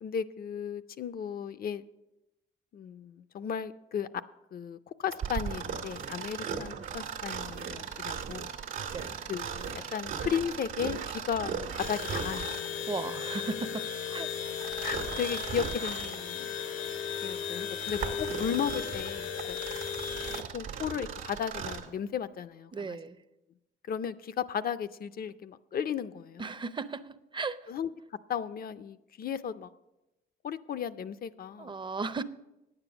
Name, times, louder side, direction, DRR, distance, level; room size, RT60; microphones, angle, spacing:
voice 1, 0.0-1.8 2.7-4.1 4.5-8.5 9.3-12.7 14.8-16.5 17.2-19.6 20.5-23.0 23.9-26.5 27.7-27.9 28.3-29.7 30.4-31.7, left 8 dB, 50° left, 15 dB, 0.5 m, -35 dB
Mechanisms, 5.1-12.8 14.6-16.2 16.8-16.9 17.6-21.9, right 7 dB, 80° right, 1.3 m, -37 dB
sound 1, 11.8-20.4, left 7 dB, 75° left, 1.0 m, -36 dB
voice 2, 12.8-14.7 22.7-23.2 26.4-27.7 31.6-32.2, right 4 dB, 25° right, 13 dB, 0.6 m, -37 dB
9.5 x 8.9 x 6.0 m, 0.95 s
cardioid pair, 90°, 20 cm